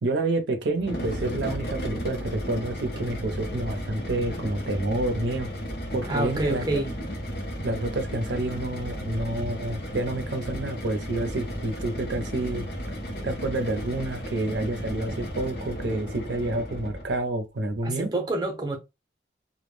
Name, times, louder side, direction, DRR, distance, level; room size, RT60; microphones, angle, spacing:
voice 1, 0.0-5.5 5.9-6.8 7.6-12.6 13.2-18.1, right 2 dB, 80° right, 0.6 m, -29 dB
sound 1, 0.8-17.2, equal, 55° left, 0.7 m, -34 dB
voice 2, 6.0-6.9 17.8-18.8, right 2 dB, 25° right, 0.6 m, -27 dB
2.2 x 2.0 x 3.1 m
head